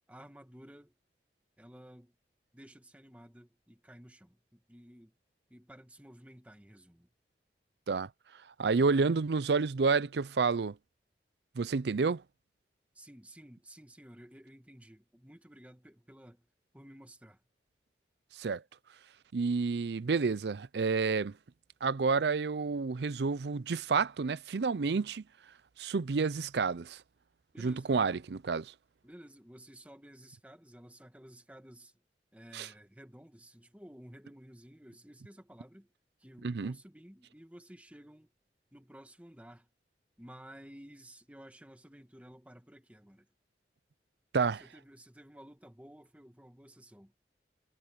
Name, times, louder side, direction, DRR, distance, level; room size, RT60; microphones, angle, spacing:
voice 1, 0.1-0.9 1.6-2.1 2.5-5.1 5.5-7.1 12.9-16.4 16.7-17.4 27.5-28.2 29.0-31.9 32.3-35.9 36.2-38.3 38.7-39.7 40.2-43.2 44.6-47.1, equal, 10° right, 1.8 m, -54 dB
voice 2, 8.6-10.8 11.6-12.2 18.4-18.6 19.3-21.3 21.8-25.2 25.8-27.0 27.6-28.7 32.5-32.7 36.4-36.8 44.3-44.6, right 4 dB, 70° right, 0.5 m, -29 dB
head